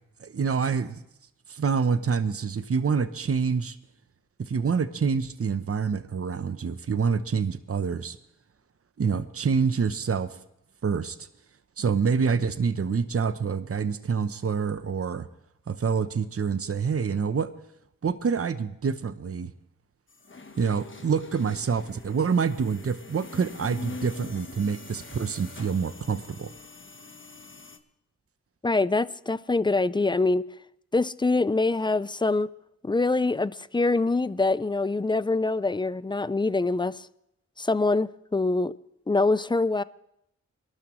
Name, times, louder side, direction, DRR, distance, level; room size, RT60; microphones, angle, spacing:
voice 1, 0.2-1.0 1.5-3.8 4.4-8.2 9.0-10.4 10.8-11.2 11.8-15.3 15.7-17.5 18.0-19.5 20.6-26.5, right 5 dB, 50° right, 11 dB, 0.9 m, -27 dB
sound 1, 20.1-27.8, left 4 dB, 40° left, 1.3 m, -44 dB
voice 2, 28.6-30.5 30.9-32.5 32.8-37.1 37.6-38.7 39.1-39.8, left 3 dB, 15° left, 17 dB, 0.4 m, -24 dB
22.5 x 12.0 x 3.2 m, 0.79 s
wide cardioid pair, 70°, 30 cm